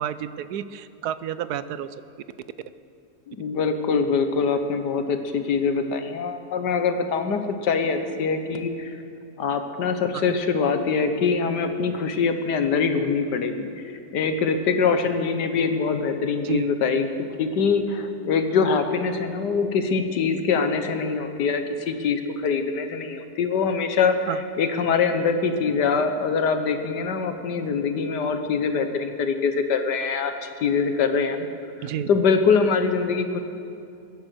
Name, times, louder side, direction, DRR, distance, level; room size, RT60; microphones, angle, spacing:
voice 1, 0.0-1.9 10.1-10.2 16.4-16.7 24.3-24.4 31.8-32.1, right 10 dB, 75° right, 14 dB, 1.1 m, -30 dB
voice 2, 3.3-8.9 9.4-13.7 14.1-17.1 17.4-31.5 31.8-33.4, left 5 dB, 85° left, 7 dB, 1.7 m, -23 dB
22.0 x 10.5 x 6.3 m, 2.6 s
omnidirectional pair, 1.8 m